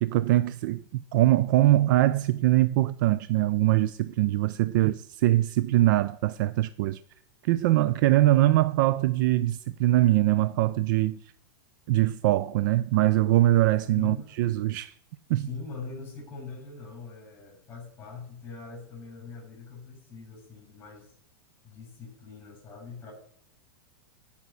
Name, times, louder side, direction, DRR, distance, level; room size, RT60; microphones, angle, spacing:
voice 1, 0.0-7.0 7.4-11.2 11.9-14.9 15.3-15.5, right 15 dB, 55° right, 0.4 m, -23 dB
voice 2, 13.9-14.3 15.4-21.1 21.6-23.1, left 4 dB, 15° left, 6.8 m, -42 dB
14.0 x 5.8 x 7.6 m
supercardioid pair, 140°, 12 cm